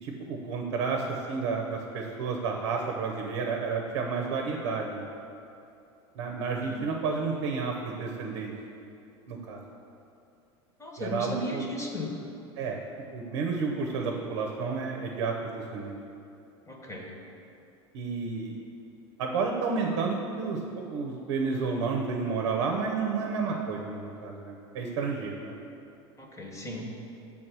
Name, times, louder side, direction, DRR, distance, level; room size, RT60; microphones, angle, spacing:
voice 1, 0.0-5.1 6.2-8.5 9.3-9.6 11.0-11.6 12.6-12.8 13.1-16.0 17.9-18.6 19.2-25.6, right 4 dB, 70° right, 1 dB, 0.7 m, -31 dB
voice 2, 10.8-12.1 16.7-17.1 26.2-26.9, left 1 dB, 20° left, 0 dB, 1.2 m, -36 dB
6.5 x 3.6 x 6.0 m, 2.7 s
hypercardioid pair, 85°, 14 cm